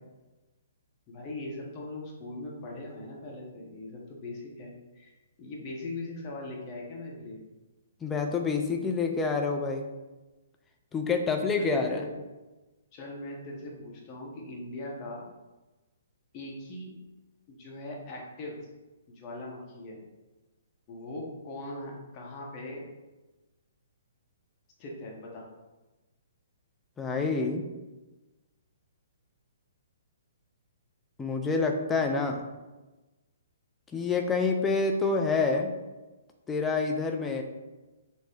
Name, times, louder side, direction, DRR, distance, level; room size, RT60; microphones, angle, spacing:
voice 1, 1.1-7.4 11.6-12.1 12.9-15.3 16.3-16.9 17.5-18.6 19.1-20.0 20.9-22.8 24.8-25.5, left 2 dB, 30° left, -2 dB, 0.7 m, -40 dB
voice 2, 8.0-9.9 10.9-12.0 27.0-27.6 31.2-32.4 33.9-35.7 36.5-37.4, left 4 dB, 10° left, 3 dB, 0.3 m, -27 dB
3.9 x 2.0 x 3.1 m, 1.1 s
figure-of-eight pair, 125°, 0 cm